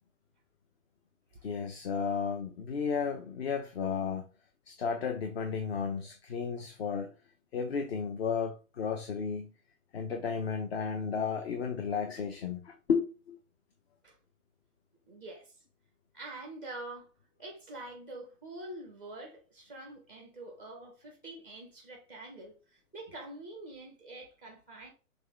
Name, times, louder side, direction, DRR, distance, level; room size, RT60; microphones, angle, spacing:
voice 1, 1.4-4.2 4.7-7.1 7.5-9.5 9.9-13.4, left 6 dB, 45° left, 0.7 m, -33 dB
voice 2, 15.1-15.5 16.1-17.1 17.4-24.9, right 2 dB, 5° left, 0.4 m, -46 dB
6.1 x 2.3 x 3.4 m
figure-of-eight pair, 125°, 43 cm